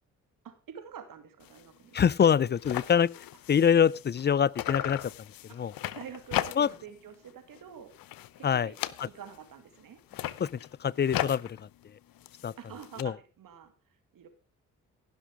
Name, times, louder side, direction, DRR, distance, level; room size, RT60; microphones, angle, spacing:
voice 1, 0.4-2.0 5.5-5.6 5.9-7.9 8.4-8.8 9.1-10.0 12.6-13.7 14.1-14.3, right 8 dB, 65° right, 2.6 m, -47 dB
sound 1, 1.4-1.7 2.0-2.1 2.3-4.3 4.5-6.9 7.3-7.6 7.9-9.5 10.0-13.0, left 13 dB, 70° left, 0.7 m, -37 dB
voice 2, 1.9-3.1 3.5-5.7 6.6-6.7 8.4-8.7 9.0-9.1 10.4-11.7 12.4-12.5 13.0-13.1, left 8 dB, 30° left, 0.5 m, -25 dB
16.5 x 6.2 x 4.7 m
supercardioid pair, 50°, 36 cm